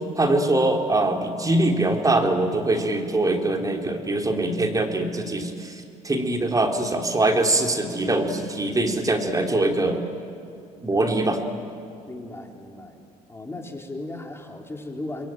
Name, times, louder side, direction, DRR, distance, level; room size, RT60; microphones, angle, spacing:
voice 1, 0.1-5.7 6.0-10.0 10.8-11.4, right 2 dB, 20° right, 3 dB, 3.4 m, -23 dB
voice 2, 12.1-13.0 13.3-15.3, left 2 dB, 15° left, 2 dB, 3.9 m, -36 dB
27.5 x 22.0 x 9.0 m, 2.5 s
hypercardioid pair, 70°, 17 cm